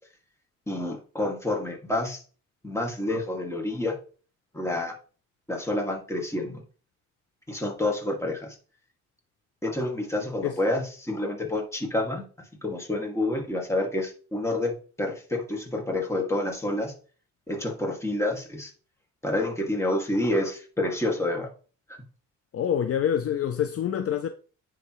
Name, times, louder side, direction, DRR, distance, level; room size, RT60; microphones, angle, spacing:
voice 1, 0.7-2.2 2.6-4.0 4.5-4.9 5.5-6.6 7.5-8.6 9.6-12.2 12.6-16.9 17.5-18.7 19.2-21.5, left 1 dB, 10° left, 2.1 m, -28 dB
voice 2, 22.5-24.3, left 9 dB, 50° left, 0.6 m, -26 dB
10.0 x 3.7 x 3.1 m
cardioid pair, 90°, 30 cm